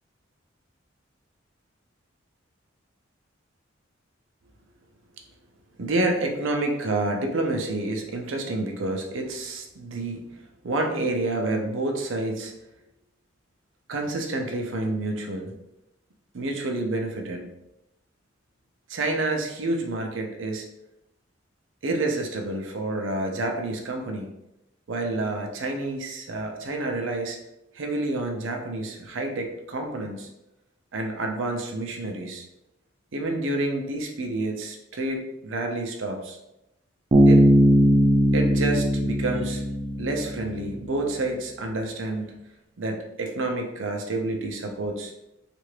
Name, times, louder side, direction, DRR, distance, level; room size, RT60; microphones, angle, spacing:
voice 1, 5.8-12.5 13.9-15.5 16.3-17.5 18.9-20.7 21.8-24.3 24.9-27.4 27.7-30.3 30.9-32.4 33.1-36.4 37.3-37.4 38.3-39.6 40.0-42.4 42.8-45.1, right 2 dB, 80° right, 3 dB, 0.6 m, -29 dB
Bass guitar, 37.1-40.7, equal, 30° right, 0.4 m, -19 dB
3.3 x 2.5 x 3.2 m, 0.88 s
head